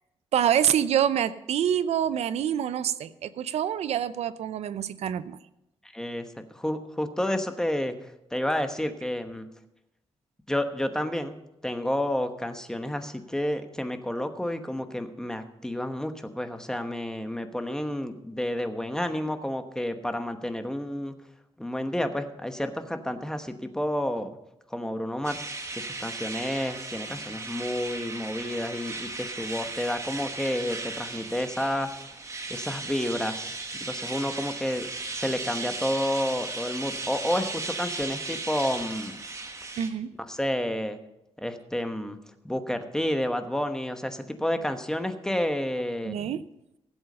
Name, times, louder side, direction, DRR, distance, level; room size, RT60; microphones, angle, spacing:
voice 1, 0.3-5.4 39.8-40.1 46.0-46.4, right 9 dB, 85° right, 15 dB, 0.6 m, -26 dB
voice 2, 5.9-6.3 6.5-7.9 8.3-9.5 10.5-11.4 11.6-21.1 21.6-24.4 24.7-25.4 25.7-31.9 32.5-33.5 33.8-34.9 35.1-39.2 40.3-41.0 41.4-42.2 42.4-46.2, left 1 dB, 5° left, 7 dB, 1.1 m, -30 dB
sound 1, 25.2-39.9, right 3 dB, 30° right, 1.5 m, -36 dB
16.0 x 7.9 x 5.5 m, 0.89 s
cardioid pair, 115°, 11 cm